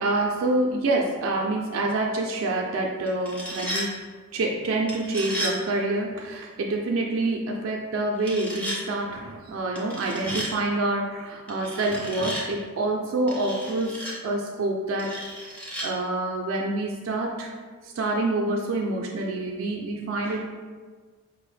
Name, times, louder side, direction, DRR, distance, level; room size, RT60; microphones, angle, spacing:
voice 1, 0.0-3.9 4.3-15.2 15.5-15.6 15.8-17.5 17.8-20.4, right 2 dB, 75° right, 0 dB, 0.3 m, -27 dB
sound 1, 3.1-3.9 4.9-5.6 8.2-8.8 9.8-10.5 11.5-12.5 13.3-14.1 15.0-15.9, equal, 5° left, 0.5 m, -33 dB
4.8 x 2.0 x 3.1 m, 1.5 s
head